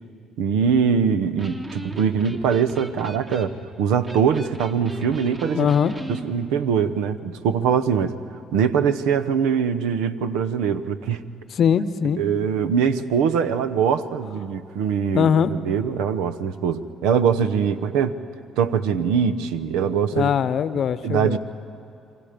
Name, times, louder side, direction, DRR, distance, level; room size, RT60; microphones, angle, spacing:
voice 1, 0.4-5.7 6.1-8.1 8.5-11.2 12.2-18.2 18.6-20.3 21.0-21.4, right 7 dB, 85° right, 11 dB, 0.9 m, -22 dB
Electric guitar, 1.2-6.3, right 1 dB, 30° right, 2.3 m, -37 dB
voice 2, 5.5-5.9 11.5-12.2 15.1-15.5 20.1-21.4, left 8 dB, 60° left, 14 dB, 0.8 m, -21 dB
27.5 x 24.0 x 5.2 m, 2.8 s
supercardioid pair, 75°, 0 cm